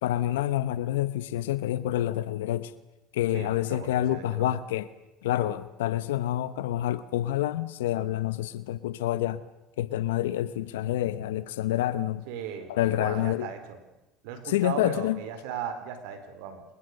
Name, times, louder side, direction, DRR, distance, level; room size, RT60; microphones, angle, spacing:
voice 1, 0.0-2.7 3.1-4.9 5.2-9.4 9.8-12.2 12.7-13.5 14.4-15.2, left 13 dB, 90° left, 0.9 m, -28 dB
voice 2, 3.3-4.6 5.4-5.5 12.3-13.8 14.2-16.6, right 7 dB, 75° right, 4.3 m, -37 dB
28.0 x 23.5 x 6.7 m
supercardioid pair, 90°, 0 cm